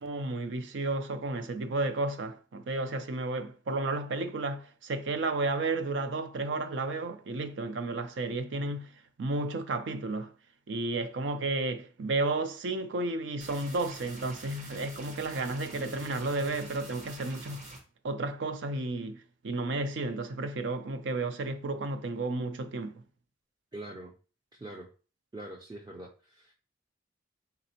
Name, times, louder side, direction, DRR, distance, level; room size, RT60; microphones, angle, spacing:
voice 1, 0.0-8.9 9.2-10.3 10.7-17.6 18.0-19.2 19.4-23.0, right 2 dB, 75° right, 0.5 m, -32 dB
sound 1, 13.4-17.8, right 2 dB, 40° right, 0.9 m, -46 dB
voice 2, 23.7-24.1 24.5-24.9 25.3-26.5, right 1 dB, 20° right, 0.4 m, -43 dB
4.0 x 3.4 x 2.8 m
head